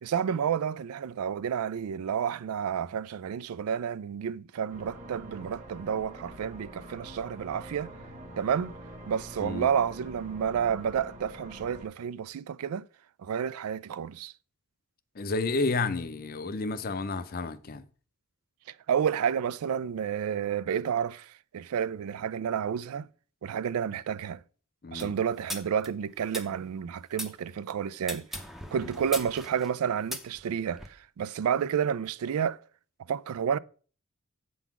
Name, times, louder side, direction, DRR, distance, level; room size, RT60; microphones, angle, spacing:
voice 1, 0.0-7.9 8.4-8.7 9.1-12.9 13.2-14.3 18.7-23.1 23.4-24.4 24.9-28.3 28.7-32.6 33.1-33.6, right 8 dB, 80° right, 0.3 m, -30 dB
sound 1, 4.7-11.9, right 1 dB, 35° right, 1.1 m, -45 dB
voice 2, 15.2-17.8 24.8-25.1, left 3 dB, 40° left, 0.5 m, -31 dB
sound 2, 25.0-27.3 28.0-30.9, equal, ahead, 0.6 m, -40 dB
8.0 x 3.9 x 5.9 m
head